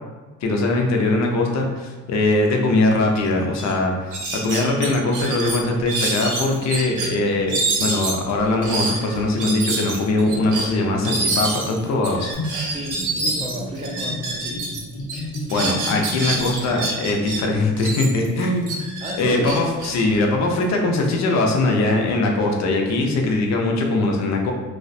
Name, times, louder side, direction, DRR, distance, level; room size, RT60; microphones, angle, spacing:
voice 1, 0.4-4.1 4.4-12.3 15.5-18.9 19.2-24.5, left 2 dB, 65° left, 1 dB, 0.5 m, -21 dB
sound 1, 3.2-3.3 3.5-3.7 4.1-7.1 7.5-14.8 15.1-17.4 17.8-20.6, right 3 dB, 90° right, 0.6 m, -27 dB
Gurgling / Bathtub (filling or washing), 12.3-17.4, left 1 dB, 90° left, 0.8 m, -32 dB
voice 2, 12.7-14.7 19.0-19.6, equal, 20° right, -3 dB, 0.4 m, -32 dB
2.4 x 2.1 x 2.6 m, 1.3 s
cardioid pair, 90°, 30 cm